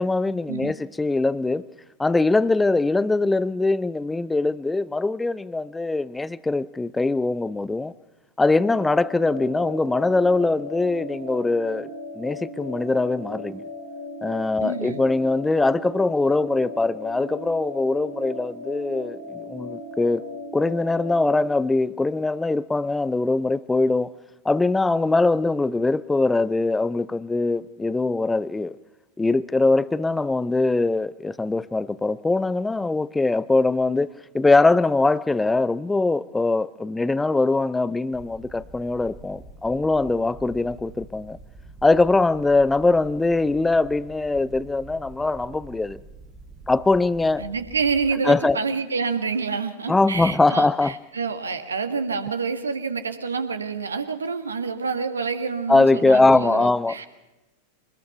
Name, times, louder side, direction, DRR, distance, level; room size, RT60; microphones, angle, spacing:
voice 1, 0.0-1.6 2.0-7.9 8.4-13.6 14.2-20.2 20.5-24.1 24.4-28.8 29.2-41.4 41.8-46.0 46.7-47.4 48.2-48.6 49.9-50.9 55.7-57.0, left 3 dB, 10° left, 0.6 m, -22 dB
sound 1, 8.6-21.4, left 2 dB, 70° left, 4.0 m, -37 dB
voice 2, 14.6-15.0 47.4-57.1, right 5 dB, 75° right, 1.8 m, -28 dB
sound 2, 38.1-48.1, right 3 dB, 10° right, 2.3 m, -46 dB
24.5 x 20.5 x 5.8 m
figure-of-eight pair, 90°, 0 cm